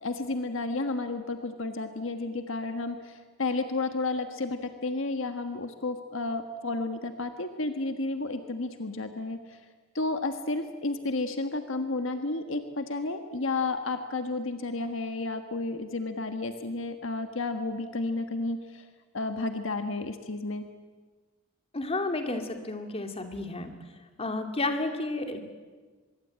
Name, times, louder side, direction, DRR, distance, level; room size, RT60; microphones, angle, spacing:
voice 1, 0.0-9.6 9.9-18.9 19.1-20.7, left 2 dB, 65° left, 7 dB, 1.5 m, -32 dB
voice 2, 21.7-23.7 24.2-25.4, left 2 dB, 30° left, 5 dB, 2.5 m, -31 dB
24.0 x 22.5 x 8.8 m, 1.4 s
head